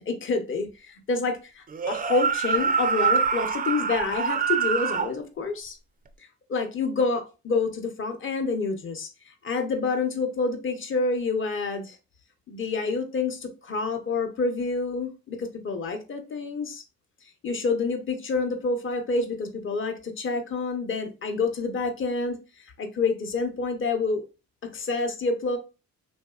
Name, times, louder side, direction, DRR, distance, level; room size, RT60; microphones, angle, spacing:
voice 1, 0.1-5.8 6.5-12.0 12.5-16.8 17.4-22.4 22.8-24.2 24.6-25.6, left 3 dB, 40° left, 0.8 m, -28 dB
sound 1, 1.7-5.1, right 6 dB, 30° right, 0.4 m, -25 dB
3.1 x 2.6 x 2.3 m
cardioid pair, 90°, 30 cm